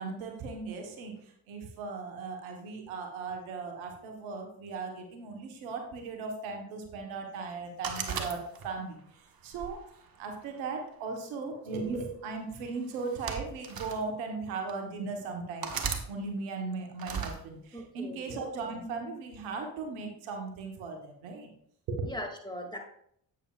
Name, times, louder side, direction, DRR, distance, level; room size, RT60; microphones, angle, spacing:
voice 1, 0.0-9.8 10.2-15.7 16.1-21.5 21.9-22.1, right 4 dB, 85° right, 3 dB, 1.3 m, -37 dB
sound 1, 7.8-8.9 9.5-10.7 11.7-11.9 12.9-14.0 14.7-14.8 15.6-16.1 17.0-17.4, right 6 dB, 50° right, 1.3 m, -36 dB
voice 2, 17.7-18.2 22.0-22.8, left 1 dB, 10° left, 2 dB, 2.3 m, -39 dB
8.4 x 8.2 x 2.4 m, 0.69 s
hypercardioid pair, 45°, 47 cm